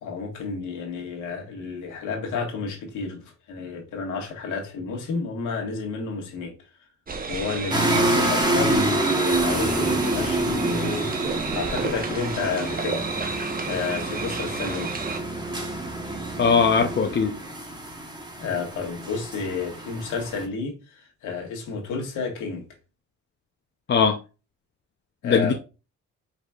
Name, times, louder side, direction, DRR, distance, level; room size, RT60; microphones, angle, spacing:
voice 1, 0.0-6.5 7.3-13.0 13.4-14.9 18.4-22.7 25.2-25.5, left 5 dB, 80° left, 1.6 m, -31 dB
sound 1, 7.1-15.2, right 4 dB, 30° right, 0.8 m, -32 dB
sound 2, 7.7-20.4, right 2 dB, 15° right, 1.2 m, -27 dB
voice 2, 16.4-17.3 23.9-24.2 25.2-25.5, left 5 dB, 35° left, 0.5 m, -20 dB
4.9 x 4.1 x 2.4 m
cardioid pair, 90°, 30 cm